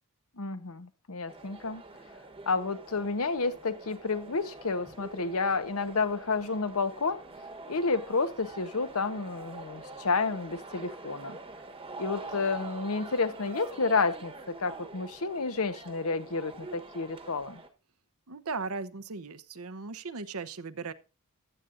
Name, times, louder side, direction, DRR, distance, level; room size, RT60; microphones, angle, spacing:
voice 1, 0.4-1.8 2.5-7.2 7.7-11.4 12.0-17.6, left 4 dB, 70° left, 11 dB, 1.0 m, -30 dB
sound 1, 1.3-17.7, right 3 dB, 25° right, 1.2 m, -45 dB
voice 2, 18.3-20.9, right 4 dB, 75° right, 12 dB, 0.9 m, -37 dB
14.5 x 10.0 x 2.6 m, 0.32 s
head